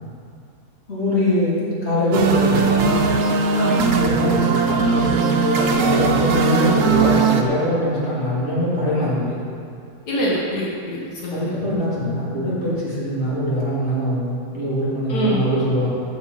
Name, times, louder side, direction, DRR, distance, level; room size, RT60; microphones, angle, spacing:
voice 1, 0.9-2.7 4.0-9.4 11.3-15.9, left 1 dB, 45° left, -9 dB, 3.4 m, -22 dB
sound 1, 2.1-7.4, right 5 dB, 60° right, 1.1 m, -19 dB
voice 2, 3.5-3.9 10.1-11.5 15.1-15.5, equal, 85° left, -6 dB, 2.1 m, -24 dB
14.5 x 8.1 x 4.1 m, 2.4 s
omnidirectional pair, 1.7 m